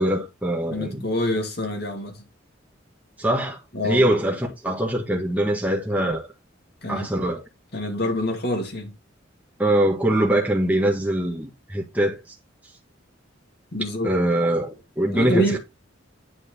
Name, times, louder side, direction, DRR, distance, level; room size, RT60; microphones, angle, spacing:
voice 1, 0.0-1.0 3.2-6.3 6.9-7.4 9.6-12.4 14.0-15.6, right 1 dB, 10° right, 1.7 m, -23 dB
voice 2, 0.7-2.2 3.7-4.1 6.8-7.1 7.7-8.9 13.7-14.2 15.1-15.6, equal, 55° left, 2.5 m, -26 dB
9.5 x 4.6 x 4.4 m
head